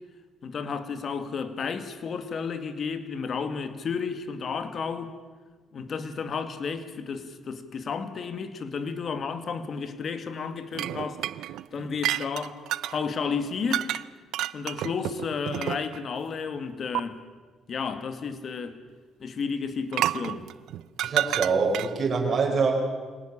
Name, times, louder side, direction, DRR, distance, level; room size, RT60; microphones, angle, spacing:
voice 1, 0.4-5.1 5.7-11.2 11.7-14.0 14.5-17.2 17.7-18.8 19.2-20.5, left 5 dB, 50° left, 2.0 m, -32 dB
sound 1, 10.7-13.0 13.7-14.0 14.3-16.1 16.9-17.0 19.9-22.1, right 13 dB, 80° right, 0.6 m, -30 dB
voice 2, 21.0-22.7, right 4 dB, 40° right, 5.7 m, -24 dB
25.5 x 18.5 x 7.4 m
cardioid pair, 100°, 0 cm